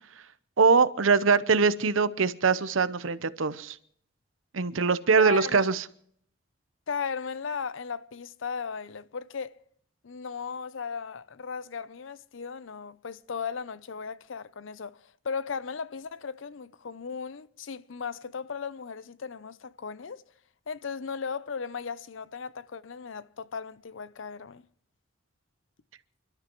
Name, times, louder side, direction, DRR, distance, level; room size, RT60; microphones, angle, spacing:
voice 1, 0.6-3.8 4.5-5.8, right 5 dB, 85° right, 0.8 m, -23 dB
voice 2, 5.2-5.7 6.9-9.6 10.0-20.2 20.7-24.7, left 6 dB, 75° left, 0.6 m, -36 dB
29.5 x 12.5 x 3.1 m
head